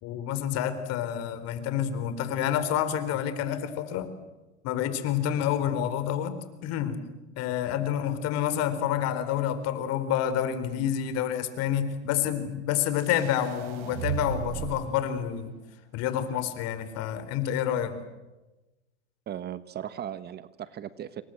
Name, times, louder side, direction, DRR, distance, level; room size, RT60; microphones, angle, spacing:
voice 1, 0.0-4.1 4.6-6.4 6.6-7.0 7.4-15.6 15.9-18.0, left 10 dB, 45° left, 12 dB, 4.3 m, -28 dB
sound 1, 13.0-15.0, right 8 dB, 55° right, 6.8 m, -35 dB
voice 2, 19.3-21.2, right 10 dB, 30° right, 14 dB, 1.2 m, -37 dB
27.5 x 23.5 x 7.9 m, 1.1 s
hypercardioid pair, 115°, 34 cm